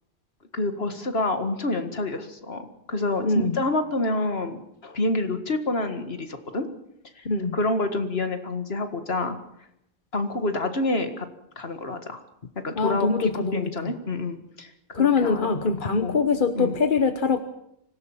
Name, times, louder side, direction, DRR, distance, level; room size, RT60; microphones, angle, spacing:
voice 1, 0.5-6.7 7.2-7.3 7.5-9.4 10.1-11.3 11.6-12.2 12.6-15.5 15.8-16.2 16.5-16.7, left 2 dB, 70° left, 7 dB, 2.2 m, -28 dB
voice 2, 3.2-3.6 7.2-7.6 12.8-13.9 14.9-17.4, left 4 dB, 55° left, 9 dB, 1.2 m, -23 dB
25.0 x 16.5 x 7.4 m, 0.78 s
omnidirectional pair, 1.1 m